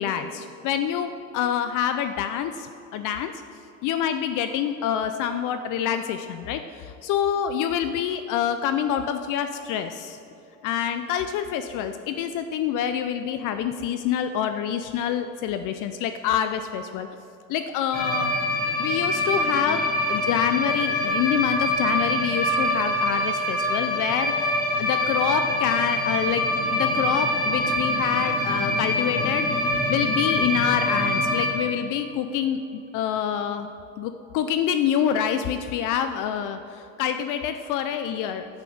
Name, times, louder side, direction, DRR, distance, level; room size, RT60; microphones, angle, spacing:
voice 1, 0.0-3.3 3.8-10.2 10.6-17.1 17.5-18.3 18.8-33.7 34.0-38.5, left 9 dB, 50° left, 9 dB, 0.5 m, -27 dB
sound 1, 17.9-31.5, left 1 dB, 20° left, 1.8 m, -25 dB
8.3 x 7.8 x 5.1 m, 2.8 s
hypercardioid pair, 90°, 42 cm